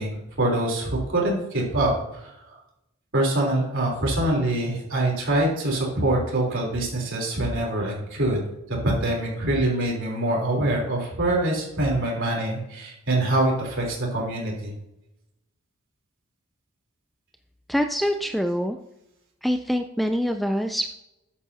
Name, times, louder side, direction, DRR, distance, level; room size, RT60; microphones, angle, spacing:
voice 1, 0.0-2.5 3.1-8.4 8.7-14.7, right 1 dB, 60° right, -2 dB, 3.5 m, -24 dB
voice 2, 17.7-18.8 19.4-20.9, equal, ahead, 6 dB, 0.3 m, -25 dB
13.5 x 8.5 x 2.8 m, 0.89 s
head